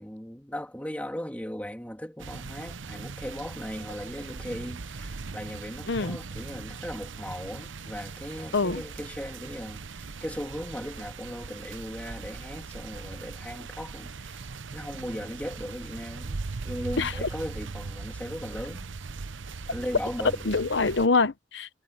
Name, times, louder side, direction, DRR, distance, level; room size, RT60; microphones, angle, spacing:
voice 1, 0.0-18.9 19.7-20.7, equal, 10° left, 3.2 m, -38 dB
sound 1, 2.2-21.1, right 4 dB, 70° right, 0.8 m, -40 dB
voice 2, 5.9-6.2 8.5-8.8 17.0-17.3 20.5-21.7, left 4 dB, 60° left, 0.9 m, -25 dB
head